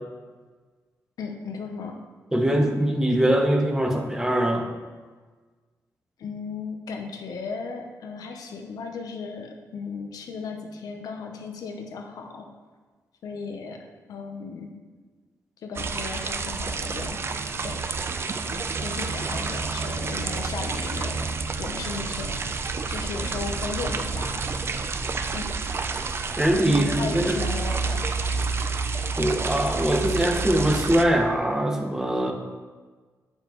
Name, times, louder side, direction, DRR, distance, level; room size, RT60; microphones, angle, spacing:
voice 1, 1.2-2.0 6.2-12.5 13.2-13.8 14.1-14.7 15.6-17.2 17.6-17.8 18.5-22.4 22.9-24.4 25.3-25.5 26.7-28.1, left 4 dB, 80° left, 3 dB, 0.7 m, -35 dB
voice 2, 2.3-4.7 26.4-27.4 29.2-32.3, right 1 dB, 10° right, 3 dB, 0.7 m, -22 dB
sound 1, 15.7-31.0, right 4 dB, 40° right, 0.4 m, -29 dB
7.1 x 5.4 x 3.0 m, 1.4 s
cardioid pair, 105°, 6 cm